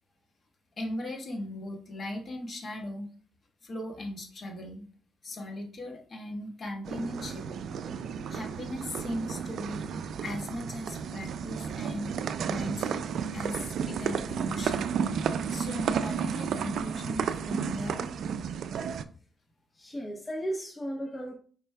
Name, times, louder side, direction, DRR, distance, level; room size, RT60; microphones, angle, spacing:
voice 1, 0.8-3.1 3.6-4.8 5.2-7.5 8.3-9.9 10.2-12.1 12.5-13.0 13.3-14.9 15.5-18.2, left 1 dB, 40° left, 1 dB, 1.2 m, -38 dB
sound 1, 6.9-19.0, right 7 dB, 65° right, 0.3 m, -32 dB
voice 2, 19.7-21.3, right 1 dB, 15° left, 0 dB, 0.7 m, -35 dB
5.0 x 4.4 x 2.2 m, 0.43 s
cardioid pair, 90°, 0 cm